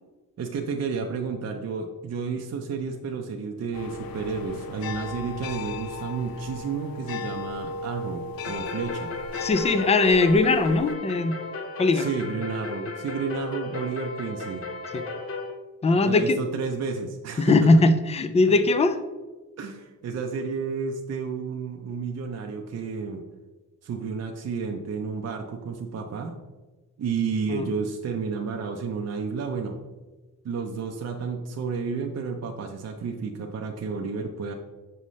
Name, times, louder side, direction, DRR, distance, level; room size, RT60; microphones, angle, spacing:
voice 1, 0.4-9.1 11.9-14.7 16.0-17.8 18.4-18.5 19.6-23.2 23.8-26.4 27.0-29.8 30.4-34.5, right 5 dB, 50° right, 2 dB, 0.6 m, -31 dB
sound 1, 3.7-10.9, left 3 dB, 85° left, 0.5 m, -35 dB
sound 2, 8.4-15.5, left 3 dB, 40° left, 0.7 m, -35 dB
voice 2, 9.4-11.4 11.8-12.1 14.9-15.0 15.8-16.4 17.4-19.0 27.5-27.7, left 3 dB, 20° left, 10 dB, 0.3 m, -20 dB
6.3 x 5.6 x 3.1 m, 1.2 s
wide cardioid pair, 130°, 35 cm